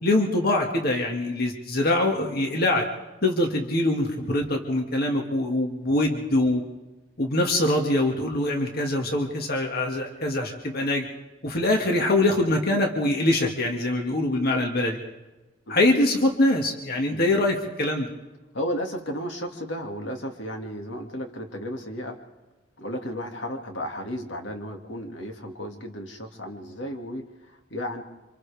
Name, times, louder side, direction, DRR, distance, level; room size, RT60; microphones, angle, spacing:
voice 1, 0.0-2.8 3.2-6.6 7.2-11.1 11.4-15.0 15.7-18.1, left 1 dB, 55° left, 1 dB, 2.1 m, -23 dB
voice 2, 18.5-22.2 22.8-28.0, equal, 75° left, 3 dB, 2.4 m, -34 dB
29.5 x 26.0 x 3.5 m, 1.1 s
head